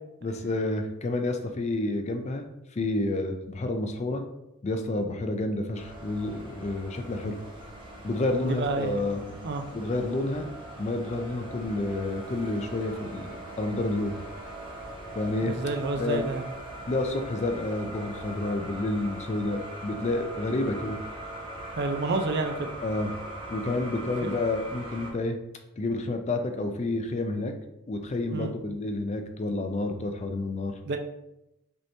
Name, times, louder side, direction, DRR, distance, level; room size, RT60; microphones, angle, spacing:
voice 1, 0.2-2.5 2.7-4.2 4.6-7.4 8.0-9.2 9.7-10.5 10.8-14.2 15.2-15.6 16.0-16.3 16.9-21.0 22.8-23.1 23.5-25.4 25.8-27.5 27.9-30.8, left 2 dB, 30° left, 6 dB, 0.4 m, -29 dB
sound 1, 5.7-25.1, right 1 dB, 20° right, 1.1 m, -41 dB
voice 2, 8.5-9.0 9.4-9.6 15.4-16.5 21.7-22.7 28.3-28.5 30.9-31.0, right 3 dB, 45° right, 5 dB, 0.4 m, -29 dB
5.3 x 2.9 x 3.3 m, 0.88 s
head